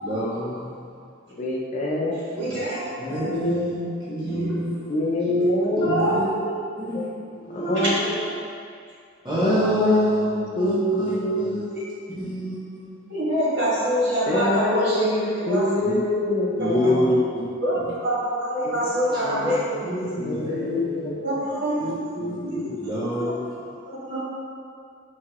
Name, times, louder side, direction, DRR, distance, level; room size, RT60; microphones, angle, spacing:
voice 1, 0.0-0.8 2.4-2.6 3.0-4.8 5.2-5.4 5.8-6.2 6.8-7.1 7.5-7.8 9.2-11.7 12.2-12.9 15.8-16.0 16.6-17.2 17.8-17.9 19.1-19.2 19.8-21.1 21.8-23.5, equal, 20° right, -9 dB, 0.7 m, -27 dB
voice 2, 1.3-2.1 3.2-3.7 4.9-5.9 6.9-7.1 7.7-8.3 9.2-10.0 10.6-11.5 14.3-17.0 18.6-18.8 19.2-19.6 20.2-21.2, left 1 dB, 35° left, -3 dB, 0.4 m, -25 dB
voice 3, 2.3-3.2 4.3-4.5 5.7-6.6 7.4-8.0 11.7-11.8 13.1-15.7 16.8-16.9 17.6-20.2 21.2-21.7 22.5-22.6 23.2-23.3 23.8-24.2, right 1 dB, 55° right, -9 dB, 1.4 m, -25 dB
4.6 x 2.7 x 2.9 m, 2.3 s
head